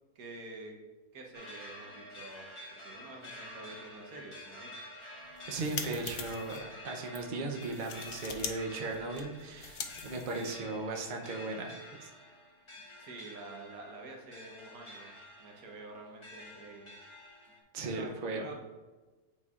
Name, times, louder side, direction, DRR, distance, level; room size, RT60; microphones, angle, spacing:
voice 1, 0.1-0.8 1.1-4.8 10.2-10.4 13.0-15.1 15.4-16.9 17.9-18.5, right 2 dB, 75° right, 1 dB, 1.4 m, -48 dB
sound 1, 1.3-17.6, left 1 dB, 25° left, 0.9 m, -49 dB
sound 2, 5.3-6.6 7.1-7.2 7.6-8.5 8.8-10.8, left 6 dB, 85° left, 0.4 m, -42 dB
voice 2, 5.5-12.1 17.7-18.5, right 3 dB, 45° right, 2 dB, 0.6 m, -37 dB
8.9 x 4.4 x 2.4 m, 1.2 s
omnidirectional pair, 1.5 m